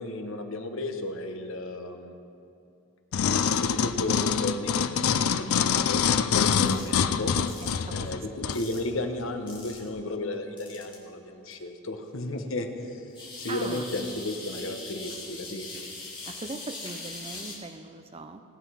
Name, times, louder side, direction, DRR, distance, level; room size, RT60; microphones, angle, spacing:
voice 1, 0.0-2.3 3.2-6.0 6.3-7.3 7.9-13.0 13.4-15.7, left 1 dB, 70° left, 5 dB, 1.1 m, -34 dB
sound 1, 3.1-8.6 9.2-9.3, left 7 dB, 85° left, 0.5 m, -25 dB
sound 2, 6.4-6.9 7.5-7.7 8.5-8.9 9.5-9.9 10.6-10.9 11.5-11.6 13.1-17.6, left 3 dB, 20° left, 2.3 m, -41 dB
voice 2, 7.3-8.5 13.5-13.9 16.3-18.4, right 2 dB, 25° right, 8 dB, 0.6 m, -40 dB
18.5 x 8.3 x 5.7 m, 2.7 s
head